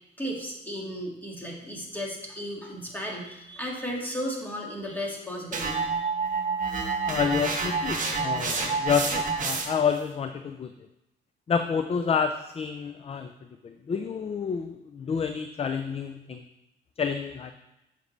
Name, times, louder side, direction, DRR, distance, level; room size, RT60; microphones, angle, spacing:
voice 1, 0.2-6.1, equal, 10° left, -2 dB, 2.0 m, -35 dB
sound 1, 5.5-9.9, right 4 dB, 40° right, 1.2 m, -28 dB
voice 2, 7.1-10.7 11.5-13.3 13.6-16.4 17.0-17.5, left 6 dB, 30° left, 8 dB, 0.4 m, -29 dB
7.1 x 6.5 x 3.2 m, 0.93 s
cardioid pair, 90°, 20 cm